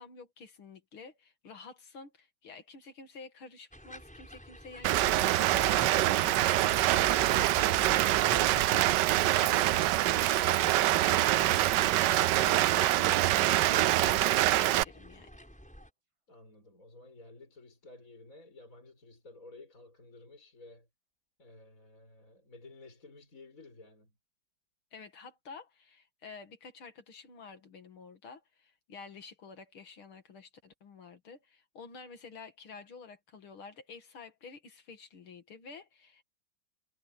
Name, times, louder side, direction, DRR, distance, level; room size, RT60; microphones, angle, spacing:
voice 1, 0.0-15.4 24.9-36.2, left 4 dB, 70° left, 2.9 m, -50 dB
sound 1, 3.7-15.9, equal, 5° left, 5.7 m, -50 dB
Rain, 4.8-14.8, right 15 dB, 80° right, 1.0 m, -25 dB
sound 2, 4.9-14.6, right 4 dB, 35° right, 0.5 m, -47 dB
voice 2, 16.3-20.9 21.4-24.1, left 2 dB, 35° left, 5.9 m, -53 dB
omnidirectional pair, 2.4 m